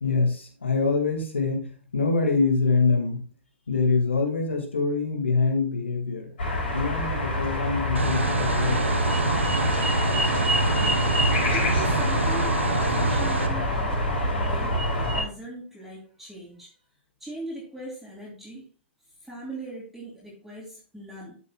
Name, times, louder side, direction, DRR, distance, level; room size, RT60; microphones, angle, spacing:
voice 1, 0.0-3.2 3.7-6.3 6.7-9.1, left 4 dB, 75° left, 3 dB, 2.2 m, -25 dB
sound 1, 6.4-15.2, equal, 60° left, 4.4 m, -25 dB
sound 2, 7.9-13.5, right 3 dB, 80° right, 1.0 m, -27 dB
voice 2, 11.5-16.7 17.2-18.7 19.2-21.4, right 1 dB, ahead, -7 dB, 2.7 m, -40 dB
12.0 x 6.6 x 2.4 m, 0.40 s
figure-of-eight pair, 105°, 6 cm